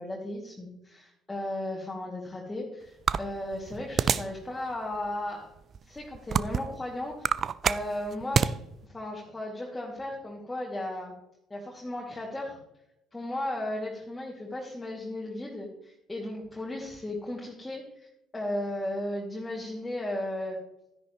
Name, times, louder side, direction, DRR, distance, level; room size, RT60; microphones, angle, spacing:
voice 1, 0.0-5.5 5.9-7.3 7.6-8.6 8.8-11.1 11.5-12.6 13.1-20.6, left 1 dB, 15° left, -2 dB, 2.4 m, -35 dB
sound 1, 3.1-4.4 4.9-5.1 5.7-6.8 7.1-8.5, right 7 dB, 45° right, 0.4 m, -26 dB
12.5 x 10.5 x 3.1 m, 0.88 s
hypercardioid pair, 55°, 0 cm